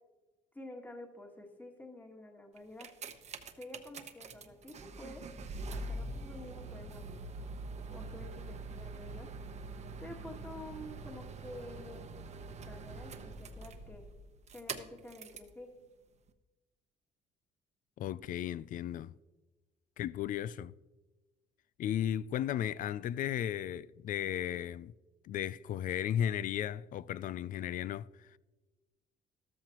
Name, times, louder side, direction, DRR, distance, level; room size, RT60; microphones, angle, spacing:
voice 1, 0.5-2.9 3.5-5.2 5.7-7.1 7.9-9.3 10.0-12.0 12.6-14.0 14.5-15.7, left 1 dB, 10° left, 1.6 m, -49 dB
sound 1, 2.6-15.6 16.3-16.4, right 3 dB, 40° right, 0.9 m, -44 dB
voice 2, 18.0-19.1 20.0-20.7 21.8-24.9 25.2-28.4, left 10 dB, 55° left, 0.4 m, -35 dB
13.5 x 13.0 x 3.0 m
cardioid pair, 110°, 17 cm